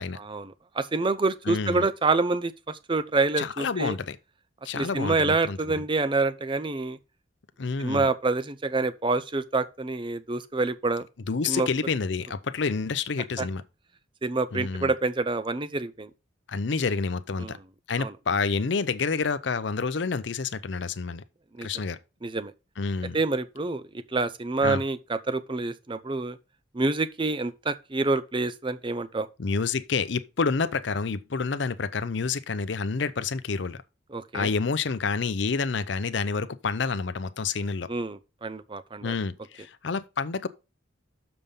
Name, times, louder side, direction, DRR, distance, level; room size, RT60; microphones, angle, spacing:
voice 1, 0.2-4.0 4.7-7.0 7.8-11.1 11.4-11.7 13.4-13.5 14.2-16.1 17.4-17.6 18.0-18.1 21.5-21.7 22.2-22.5 23.1-26.4 26.7-29.3 34.1-34.5 37.9-39.2, right 3 dB, 25° right, 0.6 m, -27 dB
voice 2, 1.5-1.9 3.4-4.2 4.6-5.8 7.6-8.1 11.3-13.6 14.5-14.9 16.5-17.6 17.9-21.2 21.6-22.0 22.8-23.2 24.6-24.8 29.4-33.8 34.3-37.9 39.0-40.5, left 4 dB, 60° left, 0.6 m, -28 dB
6.9 x 5.2 x 5.5 m
head